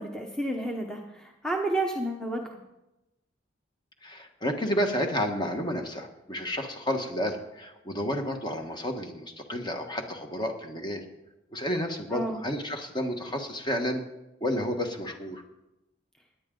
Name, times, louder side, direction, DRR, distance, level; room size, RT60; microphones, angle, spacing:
voice 1, 0.0-2.6 12.1-12.4, right 1 dB, 5° left, 1 dB, 1.0 m, -31 dB
voice 2, 4.0-11.0 11.5-14.0 14.4-15.4, equal, 25° left, 4 dB, 1.3 m, -31 dB
17.5 x 10.0 x 3.8 m, 0.93 s
head